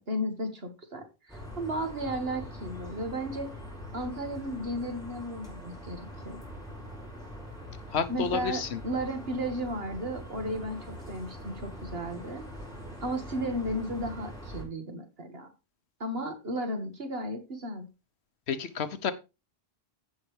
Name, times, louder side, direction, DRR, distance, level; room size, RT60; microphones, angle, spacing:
voice 1, 0.0-3.5 3.9-6.0 6.2-6.4 8.1-10.8 11.1-12.4 13.0-15.5 16.0-17.9, equal, 70° right, 5 dB, 2.1 m, -34 dB
sound 1, 1.3-14.6, equal, 5° left, 4.2 m, -43 dB
voice 2, 7.9-8.8 18.5-19.1, left 6 dB, 90° left, 11 dB, 1.2 m, -30 dB
15.0 x 5.7 x 3.3 m, 0.28 s
omnidirectional pair, 1.1 m